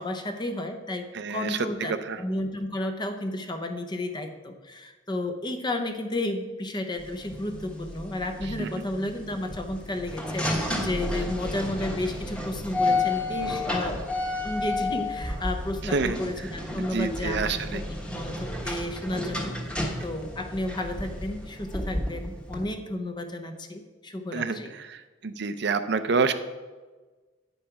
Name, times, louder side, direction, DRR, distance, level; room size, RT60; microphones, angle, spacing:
voice 1, 0.0-14.0 14.4-17.8 18.1-24.7, left 1 dB, 25° left, 6 dB, 0.7 m, -32 dB
voice 2, 1.1-1.6 1.9-2.2 8.6-8.7 15.9-16.2 16.9-17.8 24.3-24.6 24.9-25.0 25.2-26.3, right 4 dB, 65° right, 10 dB, 0.5 m, -27 dB
sound 1, 7.0-22.7, left 2 dB, 5° left, 1.3 m, -32 dB
9.6 x 5.4 x 5.8 m, 1.3 s
head